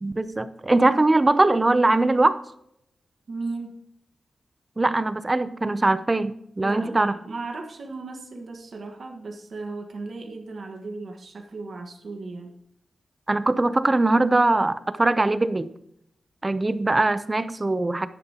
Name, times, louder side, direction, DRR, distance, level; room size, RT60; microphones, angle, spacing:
voice 1, 0.0-2.4 4.8-7.1 13.3-15.7 16.4-18.1, right 2 dB, 20° right, 13 dB, 0.6 m, -21 dB
voice 2, 3.3-3.8 6.6-12.5, right 3 dB, 55° right, 3 dB, 1.5 m, -36 dB
11.5 x 10.5 x 2.9 m, 0.75 s
wide cardioid pair, 140°, 0 cm